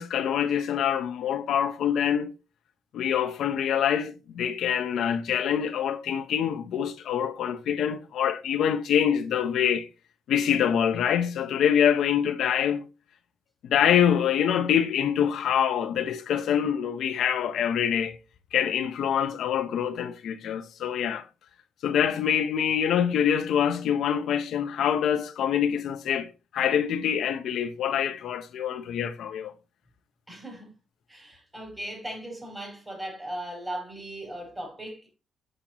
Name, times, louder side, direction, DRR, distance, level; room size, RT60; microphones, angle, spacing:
voice 1, 0.0-2.3 2.9-9.9 10.3-12.9 13.6-18.2 18.5-21.3 21.8-29.5, left 9 dB, 75° left, 0.8 m, -25 dB
voice 2, 30.3-30.7 31.1-35.2, right 1 dB, 15° right, 5.0 m, -38 dB
7.4 x 6.6 x 3.0 m
cardioid pair, 90°, 0 cm